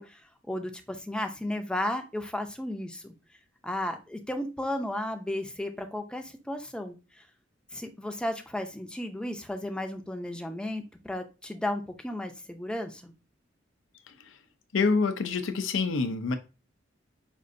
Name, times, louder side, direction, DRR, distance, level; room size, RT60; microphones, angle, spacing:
voice 1, 0.0-3.1 3.6-7.2 7.7-13.1, left 1 dB, 5° left, 0.5 m, -34 dB
voice 2, 14.7-16.4, left 4 dB, 85° left, 0.5 m, -26 dB
5.1 x 2.5 x 2.5 m
head